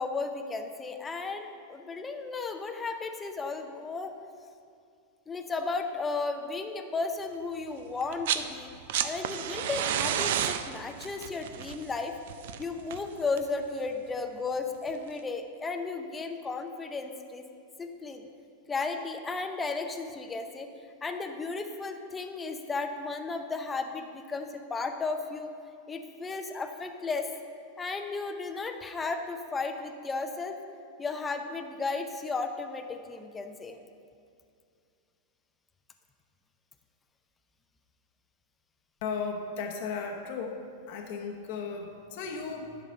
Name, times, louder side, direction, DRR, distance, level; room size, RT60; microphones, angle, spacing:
voice 1, 0.0-4.1 5.3-8.7 9.0-12.1 12.6-17.4 17.8-18.3 18.7-20.7 21.0-25.5 25.9-27.3 27.8-30.6 31.0-33.8, left 4 dB, 15° left, 6 dB, 0.6 m, -34 dB
sound 1, 8.0-8.5 8.7-13.6 14.9-15.0, right 9 dB, 70° right, 0.5 m, -31 dB
voice 2, 39.0-40.6 40.9-42.8, left 5 dB, 60° left, 2 dB, 0.9 m, -35 dB
10.5 x 4.0 x 6.7 m, 2.4 s
hypercardioid pair, 130°, 0 cm